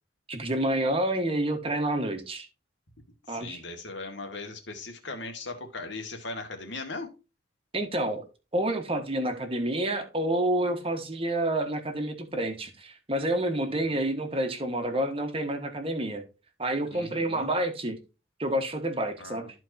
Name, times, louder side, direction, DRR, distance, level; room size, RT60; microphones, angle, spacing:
voice 1, 0.3-2.5 3.3-3.6 7.7-8.2 8.5-16.2 16.6-18.0 18.4-19.5, right 1 dB, 30° right, 1.5 m, -28 dB
voice 2, 3.3-7.1 13.9-14.0 16.9-17.5 19.2-19.5, left 3 dB, 65° left, 2.2 m, -38 dB
14.0 x 4.6 x 2.8 m
head